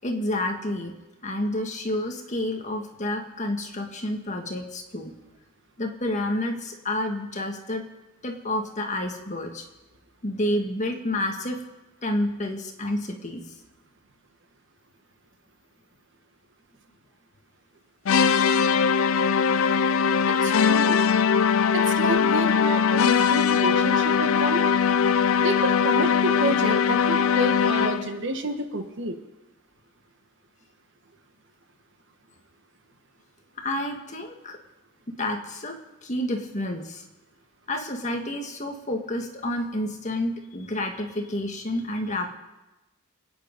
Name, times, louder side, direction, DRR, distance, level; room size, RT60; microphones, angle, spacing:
voice 1, 0.0-0.9 1.2-5.1 5.8-7.9 8.2-9.6 10.2-11.6 12.0-13.4 21.6-21.9 33.6-34.6 35.1-35.8 36.0-37.0 37.7-42.4, left 1 dB, 35° left, 3 dB, 1.7 m, -29 dB
sound 1, 18.0-28.2, left 6 dB, 75° left, 0.5 m, -21 dB
voice 2, 20.3-21.0 21.7-24.6 25.4-29.2, right 2 dB, 60° right, 6 dB, 1.4 m, -29 dB
25.0 x 9.7 x 5.2 m, 1.0 s
head